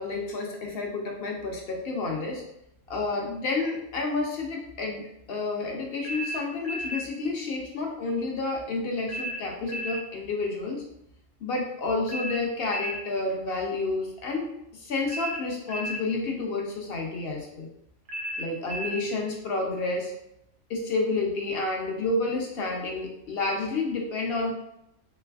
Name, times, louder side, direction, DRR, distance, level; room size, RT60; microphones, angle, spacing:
voice 1, 0.0-2.4 2.9-5.0 5.3-10.8 11.4-17.7 18.4-20.1 20.7-24.5, left 3 dB, 60° left, 0 dB, 0.7 m, -30 dB
sound 1, 6.0-7.1 9.1-10.0 12.1-13.1 15.1-16.0 18.1-19.1, right 1 dB, 50° right, 0.7 m, -34 dB
3.2 x 3.2 x 2.3 m, 0.81 s
omnidirectional pair, 1.3 m